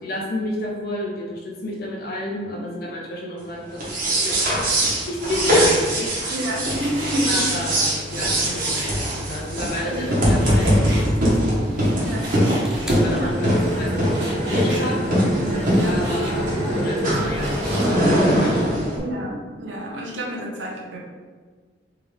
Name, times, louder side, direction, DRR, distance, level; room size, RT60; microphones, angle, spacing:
voice 1, 0.0-3.8 4.2-4.4 5.1-6.4 7.3-12.1 12.8-15.0 15.8-18.0 18.3-18.7, left 1 dB, 60° left, -3 dB, 0.7 m, -31 dB
sound 1, 3.7-19.0, equal, 50° right, 1.1 m, -21 dB
Frying (food), 6.3-18.2, right 1 dB, 75° right, 1.0 m, -38 dB
voice 2, 6.3-7.5 9.9-10.2 12.0-12.3 13.1-13.3 15.6-15.9 19.0-21.0, equal, 90° right, -1 dB, 0.7 m, -29 dB
sound 2, 9.8-14.1 15.3-15.4, equal, 5° right, 0.4 m, -38 dB
3.4 x 3.3 x 3.4 m, 1.5 s
head